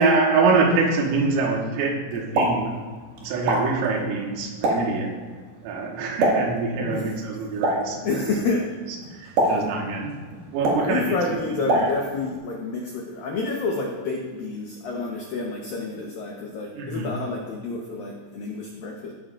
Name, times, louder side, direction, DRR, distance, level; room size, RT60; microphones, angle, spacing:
voice 1, 0.0-2.7 3.2-5.2 5.6-8.4 9.1-10.1 10.5-11.2 11.6-11.9 16.8-17.1, right 4 dB, 85° right, 0 dB, 4.0 m, -24 dB
Explosion, 2.1-12.4, right 1 dB, 60° right, 3.4 m, -28 dB
voice 2, 6.8-7.1 8.0-8.7 9.4-9.7 10.6-19.1, left 3 dB, 85° left, -1 dB, 2.0 m, -29 dB
17.5 x 9.9 x 2.5 m, 1.4 s
omnidirectional pair, 5.8 m